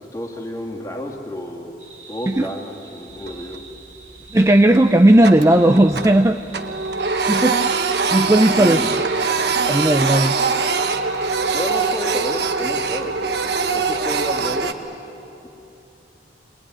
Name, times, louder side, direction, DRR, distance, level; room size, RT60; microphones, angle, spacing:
voice 1, 0.0-1.7 2.1-3.6 8.5-9.0 11.5-14.7, equal, 15° left, 1 dB, 2.3 m, -31 dB
sound 1, 1.8-12.4, right 4 dB, 80° right, 3.1 m, -44 dB
Printer, 3.1-3.8 4.1-4.3 4.7-6.2 6.5-14.7, right 4 dB, 60° right, 1.3 m, -22 dB
voice 2, 4.3-6.4 7.3-7.6 8.1-8.8 9.6-10.4, right 1 dB, 15° right, 7 dB, 0.5 m, -15 dB
23.5 x 22.0 x 9.8 m, 2.9 s
head